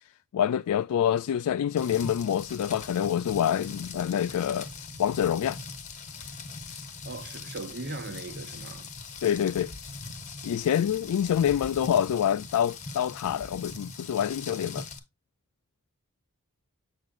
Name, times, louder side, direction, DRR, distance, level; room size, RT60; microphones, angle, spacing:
voice 1, 0.3-4.7 5.0-5.6 9.2-9.7 10.4-14.9, left 9 dB, 90° left, 0.3 m, -26 dB
Rain, 1.8-15.0, left 4 dB, 30° left, 0.9 m, -41 dB
voice 2, 7.0-8.9, right 2 dB, 50° right, 1.0 m, -39 dB
7.2 x 6.5 x 2.4 m
head